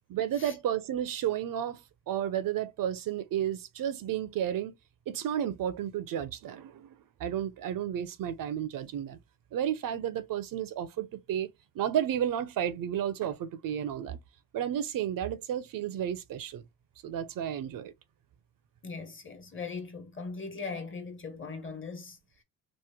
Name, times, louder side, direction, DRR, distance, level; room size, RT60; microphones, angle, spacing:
voice 1, 0.1-1.8 2.1-4.8 5.1-6.9 7.2-9.2 9.5-11.5 11.8-14.2 14.5-16.6 17.0-17.9, right 10 dB, 65° right, 0.6 m, -32 dB
voice 2, 18.8-22.2, left 4 dB, 35° left, 1.2 m, -39 dB
3.0 x 2.1 x 3.4 m
supercardioid pair, 65°, 37 cm